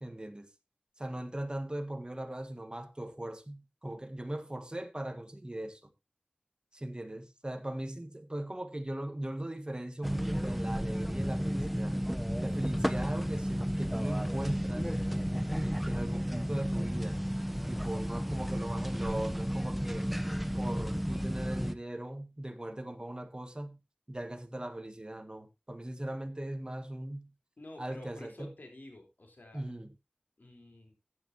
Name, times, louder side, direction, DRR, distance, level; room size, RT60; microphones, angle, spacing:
voice 1, 0.0-0.5 1.0-5.9 6.7-12.0 12.4-14.9 15.6-17.2 17.7-20.1 20.5-23.8 24.1-27.3 27.8-28.5 29.5-29.9, right 1 dB, 30° right, 1.6 m, -39 dB
sound 1, 10.0-21.7, equal, 5° right, 0.9 m, -32 dB
voice 2, 27.6-29.7 30.4-30.9, left 1 dB, 70° left, 4.1 m, -50 dB
14.5 x 9.6 x 2.9 m
wide cardioid pair, 45°, 3 cm